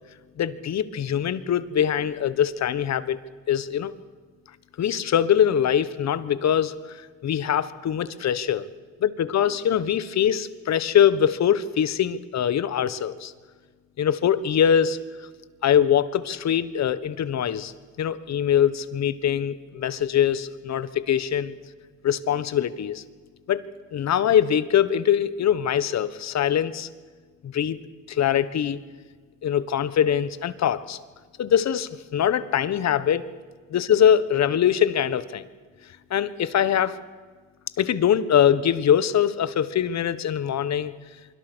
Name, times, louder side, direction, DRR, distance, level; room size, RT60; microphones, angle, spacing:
voice 1, 0.4-3.2 3.5-3.9 4.8-8.6 9.0-13.3 14.0-15.0 15.6-17.7 18.0-21.5 22.0-23.0 23.5-23.6 23.9-26.9 27.4-27.8 28.1-28.8 29.4-31.0 31.4-33.2 33.7-35.5 36.1-37.0 37.8-40.9, left 9 dB, 60° left, 15 dB, 1.4 m, -23 dB
24.5 x 24.0 x 6.3 m, 1.5 s
cardioid pair, 90°, 30 cm